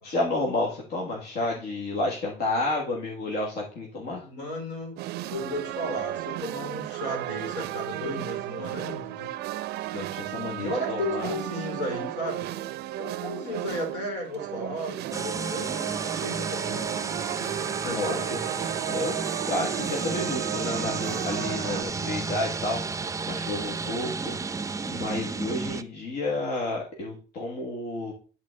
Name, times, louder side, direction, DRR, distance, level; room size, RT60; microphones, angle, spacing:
voice 1, 0.0-4.3 9.9-11.3 16.6-16.7 17.8-18.4 18.9-19.2 19.5-24.4 24.9-28.1, left 2 dB, 70° left, -2 dB, 1.8 m, -31 dB
voice 2, 4.2-4.9 5.3-9.3 10.5-12.5 13.0-17.1 17.8-18.3 23.8-24.0, left 1 dB, 85° left, 2 dB, 3.2 m, -34 dB
sound 1, 5.0-21.8, right 15 dB, 75° right, 0.5 m, -34 dB
sound 2, 15.1-25.8, right 4 dB, 20° right, 0.4 m, -32 dB
10.5 x 4.0 x 3.7 m, 0.36 s
cardioid pair, 110°, 17 cm